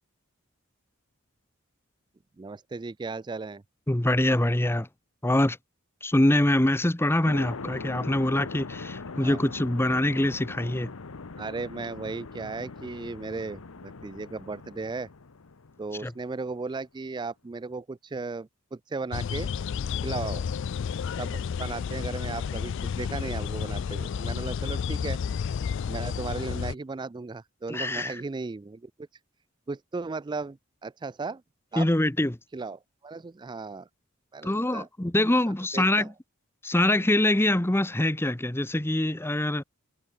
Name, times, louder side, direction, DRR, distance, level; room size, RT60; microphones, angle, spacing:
voice 1, 2.4-3.6 9.2-9.4 11.4-15.1 15.8-19.5 20.0-20.5 21.2-25.2 25.9-28.9 29.7-31.4 31.7-31.9 32.5-33.9 34.3-34.9 35.5-36.1, right 3 dB, 20° right, 0.3 m, -36 dB
voice 2, 3.9-4.9 5.2-5.6 6.0-10.9 16.0-16.1 27.7-28.1 31.8-32.4 34.4-36.1 36.6-39.6, left 1 dB, 10° left, 0.8 m, -24 dB
sound 1, 7.2-16.3, left 4 dB, 80° left, 0.9 m, -41 dB
sound 2, 19.1-26.7, left 6 dB, 60° left, 0.3 m, -31 dB
head